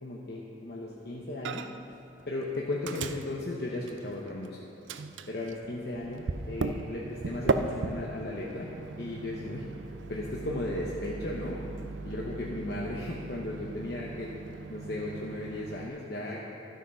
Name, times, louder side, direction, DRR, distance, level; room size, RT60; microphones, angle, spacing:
voice 1, 0.0-1.7 2.3-4.6 5.3-8.7 9.0-9.6 10.1-11.6 12.0-14.3 14.7-16.4, left 2 dB, 55° left, -3 dB, 1.0 m, -36 dB
Microwave oven, 1.4-1.9 2.2-4.5 4.9-15.9, right 4 dB, 90° right, 0.5 m, -37 dB
12.5 x 8.0 x 5.6 m, 2.9 s
head